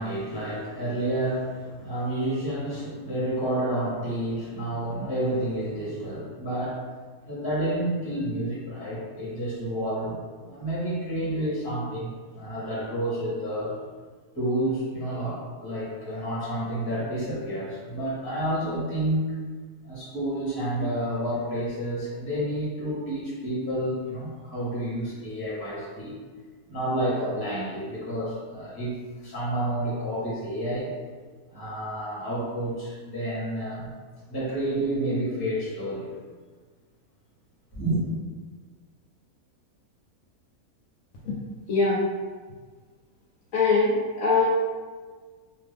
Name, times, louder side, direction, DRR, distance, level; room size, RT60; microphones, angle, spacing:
voice 1, 0.0-6.9 7.2-10.2 10.5-13.7 14.3-19.4 19.8-26.1 26.7-30.9 31.5-33.9 34.3-36.1 37.7-38.0, right 1 dB, 20° left, -8 dB, 0.9 m, -29 dB
voice 2, 41.7-42.0 43.5-44.4, left 4 dB, 70° left, -6 dB, 0.9 m, -22 dB
2.6 x 2.5 x 3.4 m, 1.5 s
omnidirectional pair, 1.6 m